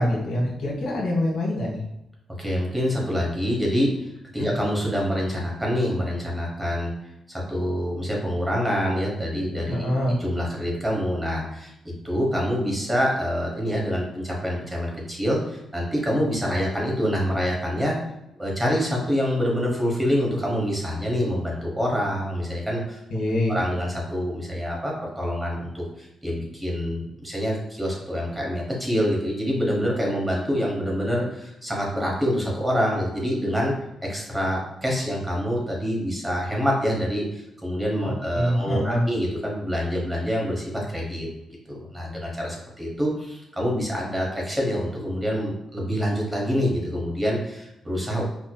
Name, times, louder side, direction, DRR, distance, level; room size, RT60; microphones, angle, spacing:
voice 1, 0.0-1.8 4.4-4.5 9.7-10.2 23.1-23.6 38.0-39.0, left 1 dB, 80° left, -3 dB, 1.2 m, -25 dB
voice 2, 2.4-9.9 10.2-18.1 18.4-23.0 23.5-33.7 34.0-41.3 41.7-48.2, equal, 10° right, -2 dB, 0.9 m, -26 dB
4.4 x 2.7 x 2.2 m, 0.87 s
cardioid pair, 125°, 0 cm